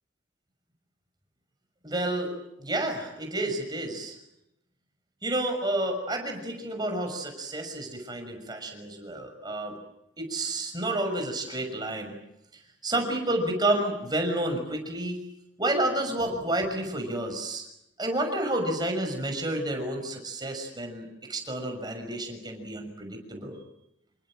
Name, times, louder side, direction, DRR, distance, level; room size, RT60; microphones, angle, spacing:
voice 1, 1.8-2.3 2.6-4.2 5.2-9.8 10.2-12.2 12.5-15.2 15.6-17.6 18.0-23.6, right 1 dB, 20° right, 4 dB, 6.4 m, -30 dB
28.5 x 24.5 x 7.7 m, 0.85 s
head